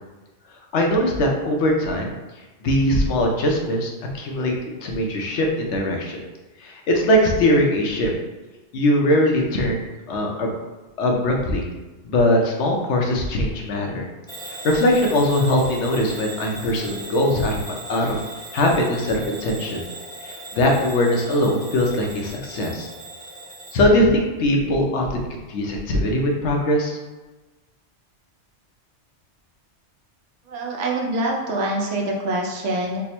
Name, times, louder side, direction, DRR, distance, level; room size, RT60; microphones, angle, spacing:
voice 1, 0.7-2.1 2.6-6.2 6.6-8.1 8.7-10.5 11.0-11.7 12.0-14.0 14.5-18.2 18.5-19.8 20.2-22.9 23.7-27.0, left 1 dB, 75° left, 0 dB, 1.0 m, -21 dB
Bell / Alarm, 14.3-23.8, right 2 dB, 5° left, 0.8 m, -38 dB
voice 2, 30.5-33.0, right 1 dB, 90° right, 0 dB, 1.0 m, -25 dB
3.4 x 2.0 x 4.2 m, 1.2 s
omnidirectional pair, 1.2 m